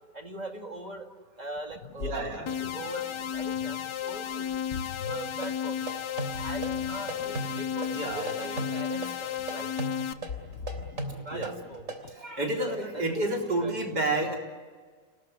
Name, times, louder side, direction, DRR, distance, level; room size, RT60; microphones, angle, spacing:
voice 1, 0.1-1.1 1.4-4.6 5.0-5.9 6.4-9.7 11.2-11.9 12.4-13.8, right 2 dB, 25° right, 4 dB, 1.9 m, -41 dB
Ocean, 1.6-12.3, left 6 dB, 55° left, 1.2 m, -43 dB
voice 2, 2.0-2.5 4.2-4.3 7.9-8.6 11.3-11.5 12.2-14.4, right 2 dB, 75° right, 1 dB, 4.6 m, -30 dB
sound 1, 2.5-10.1, left 9 dB, 80° left, 1.6 m, -33 dB
sound 2, 5.1-12.1, right 3 dB, 50° right, 3.6 m, -36 dB
29.5 x 19.0 x 9.4 m, 1.5 s
omnidirectional pair, 1.8 m